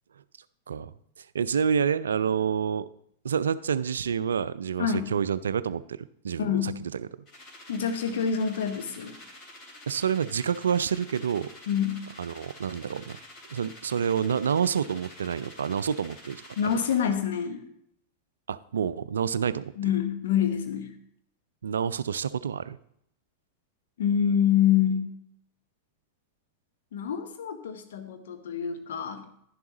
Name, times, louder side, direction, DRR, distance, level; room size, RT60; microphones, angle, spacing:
voice 1, 1.2-2.9 3.2-7.1 9.9-11.5 12.2-13.2 13.5-16.8 18.5-19.7 21.6-22.8, right 7 dB, 70° right, 16 dB, 0.3 m, -28 dB
voice 2, 4.8-5.1 6.4-6.8 7.7-9.1 11.7-12.0 16.6-17.6 19.8-20.9 24.0-25.1 26.9-29.2, left 8 dB, 60° left, 6 dB, 1.1 m, -26 dB
sound 1, 7.3-17.0, left 1 dB, 35° left, 3.6 m, -48 dB
11.0 x 10.5 x 2.9 m, 0.72 s
figure-of-eight pair, 90°, 0 cm